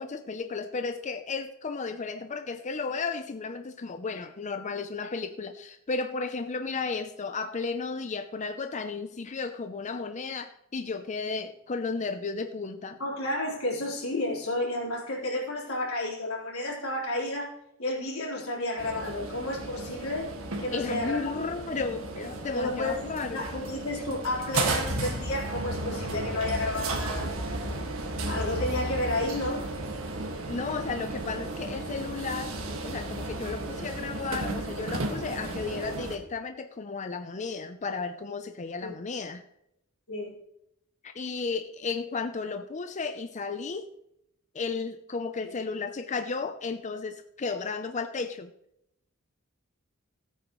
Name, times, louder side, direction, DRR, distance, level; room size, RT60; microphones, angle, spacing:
voice 1, 0.0-13.0 20.7-23.4 30.5-32.5 32.8-39.4 41.0-43.9 44.5-48.5, left 4 dB, 35° left, 0.6 m, -34 dB
voice 2, 13.0-17.5 17.8-20.3 20.6-21.3 22.5-27.3 28.2-29.7 38.8-38.9 40.1-40.3 45.4-45.5, left 1 dB, 90° left, 4.2 m, -31 dB
sound 1, 18.8-36.2, right 2 dB, 70° right, 1.8 m, -34 dB
16.5 x 8.9 x 3.1 m
head